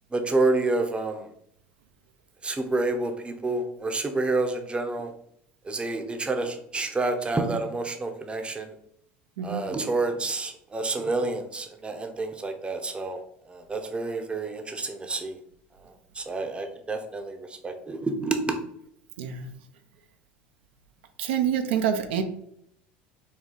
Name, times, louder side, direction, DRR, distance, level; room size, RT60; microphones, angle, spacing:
voice 1, 0.1-1.3 2.4-5.1 5.6-8.7 9.4-13.2 13.5-15.4 16.1-18.6, right 3 dB, 20° right, 5 dB, 0.7 m, -28 dB
voice 2, 19.2-19.5 21.2-22.2, right 8 dB, 80° right, 6 dB, 0.5 m, -26 dB
4.2 x 2.3 x 3.8 m, 0.71 s
hypercardioid pair, 85°, 6 cm